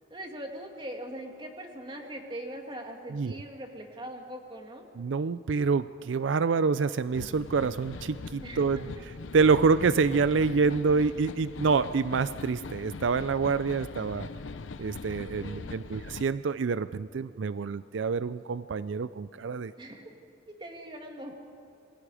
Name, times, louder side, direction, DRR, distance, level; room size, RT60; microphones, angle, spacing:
voice 1, 0.1-4.8 8.4-8.8 15.4-16.0 19.8-20.2 20.5-21.3, right 1 dB, 25° right, 2 dB, 2.3 m, -41 dB
voice 2, 5.0-8.8 9.3-14.3 14.8-19.7, right 5 dB, 75° right, 14 dB, 0.4 m, -27 dB
sound 1, 7.1-16.2, left 3 dB, 85° left, 0.7 m, -41 dB
27.5 x 21.5 x 5.0 m, 2.8 s
head